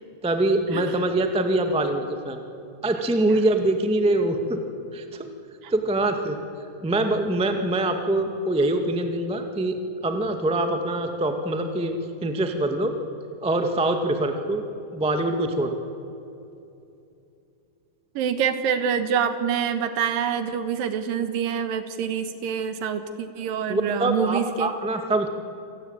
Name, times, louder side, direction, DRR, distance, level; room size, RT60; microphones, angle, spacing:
voice 1, 0.2-2.4 2.8-4.6 4.9-5.3 5.7-6.4 6.8-9.8 10.0-12.9 13.4-14.6 14.9-15.8 23.7-25.3, right 2 dB, 5° right, 6 dB, 0.4 m, -24 dB
voice 2, 18.2-24.7, right 7 dB, 75° right, 10 dB, 3.1 m, -26 dB
27.0 x 18.5 x 9.0 m, 2.7 s
omnidirectional pair, 4.1 m